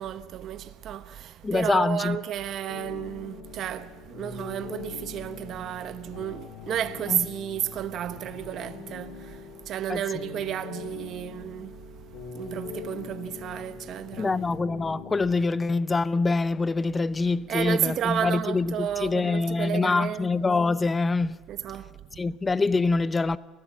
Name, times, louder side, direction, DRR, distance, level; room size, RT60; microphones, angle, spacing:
voice 1, 0.0-11.8 12.2-14.5 17.5-20.3 21.5-22.2, right 10 dB, 50° right, 0.9 m, -32 dB
voice 2, 1.4-2.2 7.1-7.3 9.9-10.0 14.2-21.4 22.2-23.4, left 3 dB, 20° left, 0.6 m, -25 dB
sound 1, 2.7-15.4, left 7 dB, 80° left, 3.1 m, -43 dB
29.5 x 14.5 x 7.3 m
cardioid pair, 130°, 0 cm